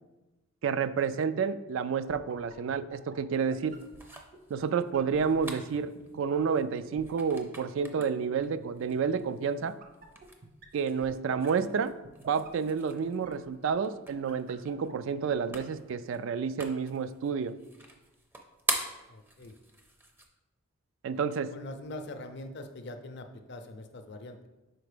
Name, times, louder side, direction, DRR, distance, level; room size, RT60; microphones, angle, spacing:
voice 1, 0.6-3.8 4.5-9.8 10.7-12.0 12.3-17.5 21.0-21.6, right 6 dB, 65° right, 13 dB, 0.3 m, -30 dB
sound 1, 2.1-15.5, right 3 dB, 40° right, 0.7 m, -51 dB
sound 2, 3.6-20.3, right 1 dB, 10° right, 0.5 m, -44 dB
voice 2, 19.1-19.6 21.1-24.5, left 2 dB, 55° left, 7 dB, 0.6 m, -43 dB
5.0 x 4.5 x 5.0 m, 1.0 s
head